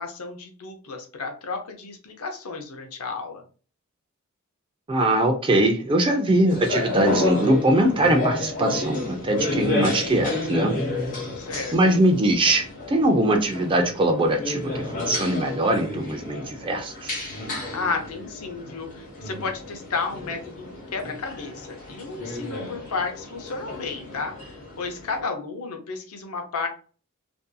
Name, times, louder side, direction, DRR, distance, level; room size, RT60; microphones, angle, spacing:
voice 1, 0.0-3.4 9.7-10.2 11.4-11.7 17.7-26.7, left 4 dB, 75° left, 4 dB, 0.6 m, -32 dB
voice 2, 4.9-10.7 11.7-17.1, right 1 dB, 20° right, 4 dB, 0.4 m, -22 dB
sound 1, 6.5-25.2, left 2 dB, 35° left, 0.8 m, -31 dB
2.6 x 2.6 x 2.2 m, 0.39 s
head